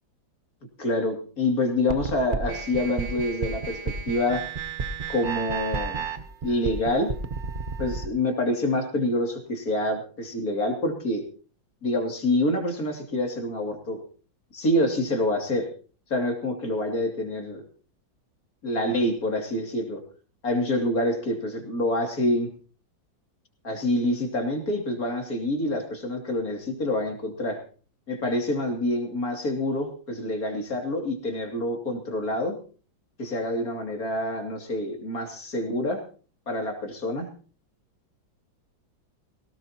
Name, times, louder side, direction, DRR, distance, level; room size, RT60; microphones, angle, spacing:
voice 1, 0.8-4.4 5.1-6.0 6.4-7.1 7.8-11.2 11.8-14.0 14.5-15.7 16.1-17.6 18.6-20.0 20.4-22.5 23.6-27.6 28.1-32.5 33.2-36.0 36.5-37.3, left 1 dB, 45° left, 3 dB, 3.2 m, -27 dB
sound 1, 1.9-8.1, right 5 dB, 40° right, 0.7 m, -32 dB
18.0 x 17.5 x 2.9 m, 0.39 s
omnidirectional pair, 2.1 m